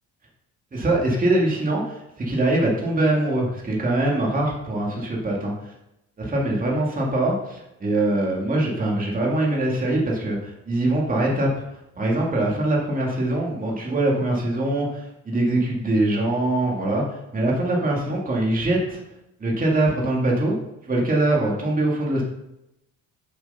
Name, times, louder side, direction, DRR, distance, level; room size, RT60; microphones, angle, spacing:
voice 1, 0.7-5.7 6.2-11.5 12.0-19.0 19.4-20.5 20.9-22.2, right 1 dB, 25° right, -2 dB, 2.4 m, -23 dB
7.4 x 7.1 x 5.5 m, 0.86 s
cardioid pair, 115°, 34 cm